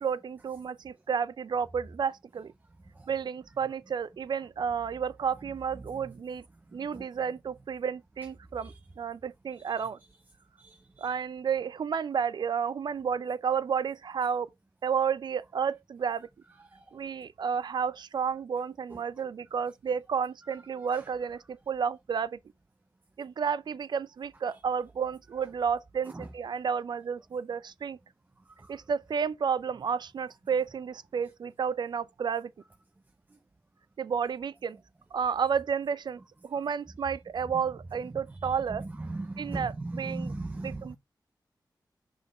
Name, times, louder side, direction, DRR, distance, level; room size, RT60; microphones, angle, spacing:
voice 1, 0.0-2.5 3.1-6.4 6.7-10.0 11.0-14.5 14.8-16.3 16.9-22.4 23.2-28.0 28.7-32.5 34.0-34.8 35.1-38.8 39.4-40.3 40.6-41.0, right 6 dB, 70° right, 0.5 m, -31 dB
voice 2, 10.6-11.1 16.7-16.8 20.9-21.0 26.1-26.3 28.6-28.7 38.4-41.0, right 2 dB, 25° right, 0.6 m, -38 dB
6.5 x 5.2 x 4.2 m
wide cardioid pair, 85°, 8 cm